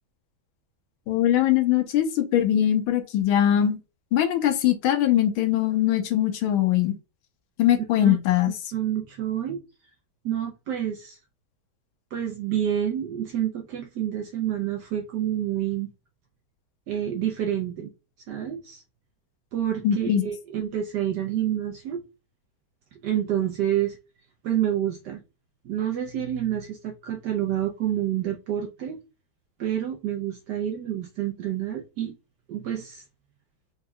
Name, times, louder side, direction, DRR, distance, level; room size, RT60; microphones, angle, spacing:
voice 1, 1.1-3.8 4.1-6.9 7.6-8.5 19.8-20.3, left 11 dB, 80° left, 1.5 m, -21 dB
voice 2, 8.7-9.6 10.2-11.2 12.1-15.9 16.9-17.9 18.3-18.8 19.5-22.0 22.9-24.0 24.4-25.2 25.6-29.0 29.6-32.2 32.5-33.0, right 11 dB, 70° right, 1.0 m, -28 dB
4.1 x 3.6 x 2.2 m
omnidirectional pair, 2.3 m